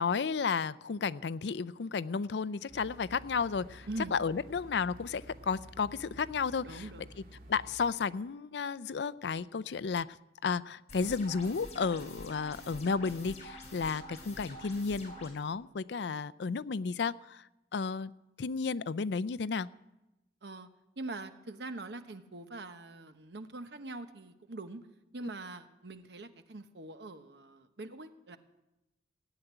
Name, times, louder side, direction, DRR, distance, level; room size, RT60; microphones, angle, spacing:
voice 1, 0.0-6.8 7.5-10.1 10.4-17.4 17.7-18.1 18.4-19.7, left 5 dB, 70° left, 18 dB, 0.5 m, -33 dB
sound 1, 2.7-7.9, right 1 dB, 55° right, 2.3 m, -52 dB
voice 2, 6.6-7.0 20.4-20.7 21.0-24.8 25.1-28.4, right 2 dB, 70° right, 9 dB, 1.1 m, -43 dB
sound 2, 10.9-15.3, left 1 dB, 40° left, 5.1 m, -47 dB
17.0 x 8.0 x 9.9 m, 0.97 s
head